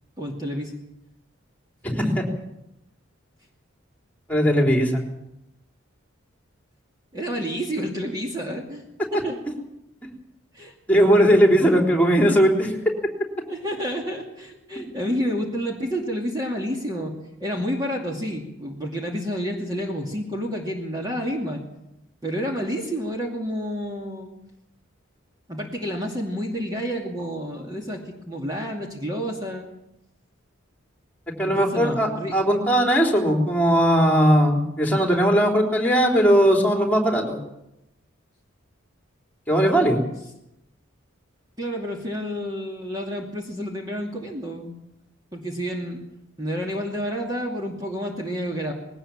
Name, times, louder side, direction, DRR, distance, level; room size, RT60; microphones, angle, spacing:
voice 1, 0.2-0.7 2.0-2.1 7.1-8.8 9.1-9.4 10.5-10.7 13.5-17.1 17.4-21.6 22.2-24.3 25.5-29.7 31.4-32.4 41.6-44.7 45.3-46.0 46.4-48.7, equal, 20° right, 0 dB, 2.5 m, -29 dB
voice 2, 1.8-2.3 4.3-5.0 10.9-12.8 31.4-37.4 39.5-40.0, equal, 10° left, 1 dB, 3.6 m, -19 dB
20.5 x 18.0 x 7.3 m, 0.86 s
head